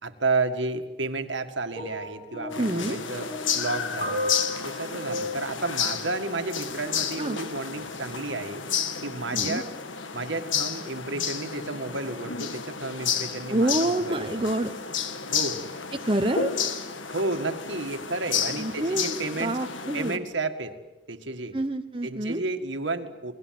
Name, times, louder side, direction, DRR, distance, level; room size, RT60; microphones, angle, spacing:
voice 1, 0.0-4.3 4.6-8.6 9.0-9.7 10.1-14.5 15.3-15.6 17.1-19.5 19.9-20.7 21.1-21.6 22.0-23.4, right 3 dB, 75° right, 6 dB, 2.0 m, -31 dB
sound 1, 1.7-6.9 7.8-7.9, left 2 dB, 40° left, 6.5 m, -35 dB
sound 2, 2.5-20.2, left 7 dB, 90° left, 1.7 m, -31 dB
voice 2, 2.6-3.0 7.2-7.4 9.3-9.6 13.5-14.7 16.0-16.5 18.6-20.2 21.5-22.4, right 1 dB, 25° right, 5 dB, 1.0 m, -27 dB
29.0 x 20.5 x 7.8 m, 1.1 s
head